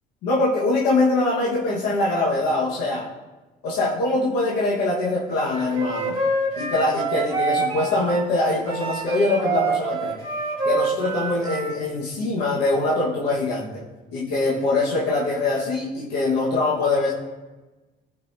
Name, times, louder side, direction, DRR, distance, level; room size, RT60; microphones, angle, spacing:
voice 1, 0.2-3.0 3.6-6.2 6.6-10.2 10.6-13.7 14.1-17.1, left 2 dB, 90° left, -4 dB, 1.4 m, -23 dB
Wind instrument woodwind instrument, 5.5-8.3 8.7-11.8, right 3 dB, 30° right, 2.3 m, -26 dB
13.5 x 5.3 x 2.7 m, 1.2 s
cardioid pair, 110°, 17 cm